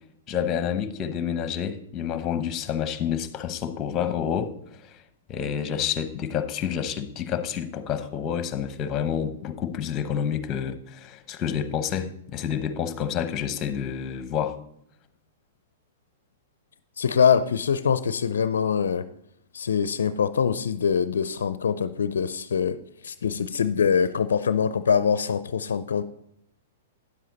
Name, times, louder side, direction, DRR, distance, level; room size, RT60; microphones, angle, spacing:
voice 1, 0.3-4.5 4.8-5.0 5.3-14.6, left 8 dB, 30° left, 1.0 m, -29 dB
voice 2, 17.0-19.0 19.5-22.8 23.0-26.0, left 7 dB, 80° left, 0.4 m, -23 dB
10.0 x 7.5 x 4.1 m
hypercardioid pair, 120°, 0 cm